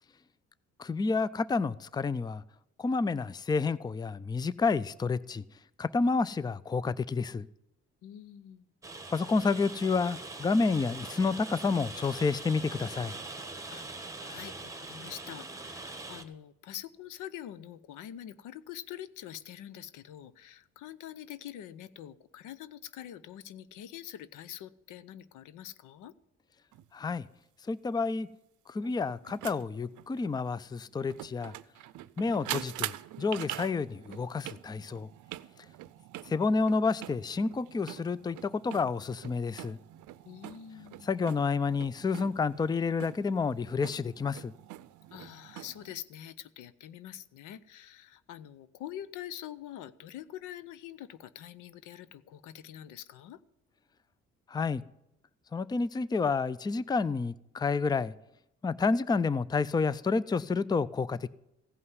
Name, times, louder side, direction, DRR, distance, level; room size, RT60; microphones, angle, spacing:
voice 1, 0.8-2.4 2.8-5.4 5.8-7.5 9.1-13.2 26.9-27.3 27.7-28.3 28.7-31.5 32.2-35.1 36.3-39.8 41.0-44.5 54.5-54.8 55.5-58.1 58.6-61.3, left 4 dB, 15° left, 0.4 m, -29 dB
voice 2, 8.0-8.7 13.7-26.1 40.3-41.1 45.1-53.4, left 11 dB, 90° left, 0.7 m, -45 dB
Rain, 8.8-16.2, right 3 dB, 10° right, 1.4 m, -42 dB
sound 1, 26.7-26.9 28.8-45.9, right 15 dB, 80° right, 0.6 m, -44 dB
16.0 x 5.5 x 9.5 m
cardioid pair, 90°, 30 cm